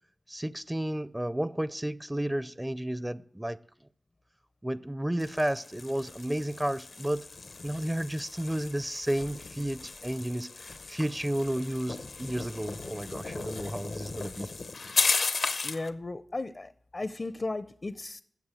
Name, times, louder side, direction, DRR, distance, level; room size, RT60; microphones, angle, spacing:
voice 1, 0.3-3.6 4.6-7.2 7.6-14.5, right 1 dB, 15° right, 16 dB, 0.4 m, -32 dB
sound 1, 5.2-15.9, left 4 dB, 85° left, 0.8 m, -35 dB
voice 2, 15.6-18.2, left 2 dB, 50° left, 13 dB, 0.5 m, -35 dB
13.0 x 7.7 x 7.6 m, 0.65 s
cardioid pair, 50°, 0 cm